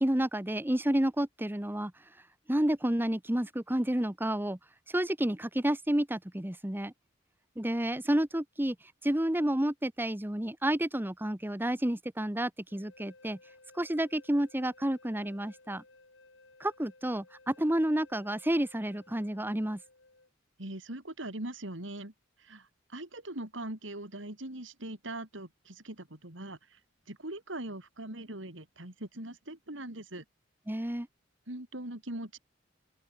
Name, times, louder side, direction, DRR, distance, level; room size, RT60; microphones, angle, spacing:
voice 1, 0.0-1.9 2.5-4.6 4.9-6.9 7.6-8.8 9.0-13.4 13.7-15.8 16.6-19.8 30.7-31.1, right 1 dB, 10° right, 1.1 m, -30 dB
sound 1, 12.7-20.3, left 2 dB, 70° left, 7.2 m, -59 dB
voice 2, 20.6-22.1 22.4-26.8 27.1-30.2 31.5-32.4, right 1 dB, 75° right, 4.4 m, -41 dB
open air
head